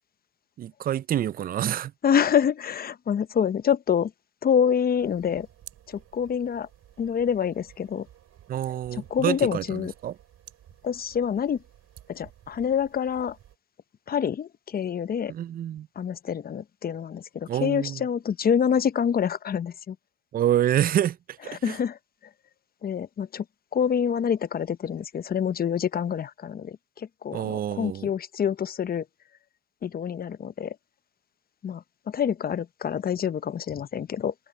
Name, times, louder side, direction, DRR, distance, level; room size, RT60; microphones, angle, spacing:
voice 1, 0.6-1.9 8.5-10.1 15.3-15.9 17.5-18.0 20.3-21.2 21.5-21.8 27.3-28.1, right 11 dB, 30° right, 0.4 m, -27 dB
voice 2, 2.0-4.1 4.4-5.5 5.9-6.7 7.0-8.1 8.9-9.9 10.8-11.6 12.1-13.4 14.1-15.3 16.0-20.0 21.5-22.0 22.8-23.4 23.7-29.0 29.8-30.8 31.6-34.3, left 8 dB, 30° left, 0.8 m, -26 dB
sound 1, 5.0-13.6, right 11 dB, 55° right, 4.7 m, -53 dB
cardioid pair, 100°, 29 cm